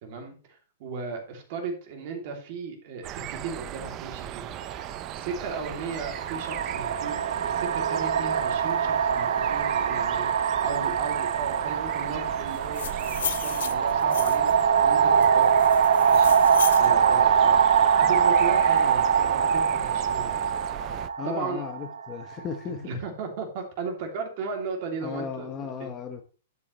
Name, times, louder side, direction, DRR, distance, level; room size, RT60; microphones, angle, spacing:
voice 1, 0.0-7.2 7.4-15.6 16.1-20.5 21.2-21.6 22.8-25.9, right 4 dB, 35° right, 3 dB, 2.9 m, -36 dB
sound 1, 3.0-21.1, right 12 dB, 20° right, 0.4 m, -38 dB
sound 2, 4.6-4.8 5.7-22.4, right 7 dB, 85° right, 0.9 m, -23 dB
sound 3, 12.5-14.6 15.2-16.9, left 10 dB, 65° left, 0.5 m, -34 dB
voice 2, 21.2-23.0 25.0-26.2, left 6 dB, 15° left, 5 dB, 1.0 m, -35 dB
11.5 x 8.3 x 3.2 m, 0.35 s
hypercardioid pair, 175°, 0 cm